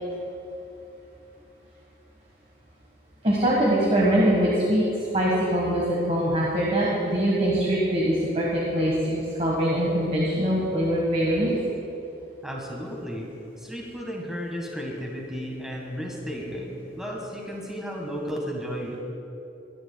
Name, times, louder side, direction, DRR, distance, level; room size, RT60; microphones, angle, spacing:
voice 1, 3.2-4.9 5.1-11.5, right 1 dB, 35° right, -5 dB, 1.5 m, -23 dB
voice 2, 12.4-13.3 13.6-19.0, equal, 5° right, -1 dB, 1.5 m, -33 dB
22.0 x 10.5 x 2.3 m, 2.9 s
head